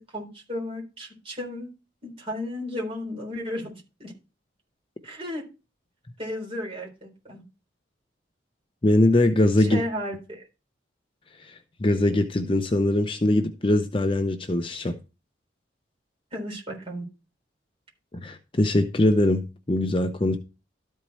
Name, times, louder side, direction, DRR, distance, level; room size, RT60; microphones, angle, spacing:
voice 1, 0.1-1.7 2.0-3.7 4.0-4.1 5.0-5.4 6.2-7.4 9.6-10.4 16.3-17.0, left 1 dB, 30° right, 3.8 m, -34 dB
voice 2, 8.8-9.8 11.4-15.0 18.1-20.4, left 1 dB, 25° left, 0.6 m, -22 dB
13.0 x 4.7 x 4.1 m
head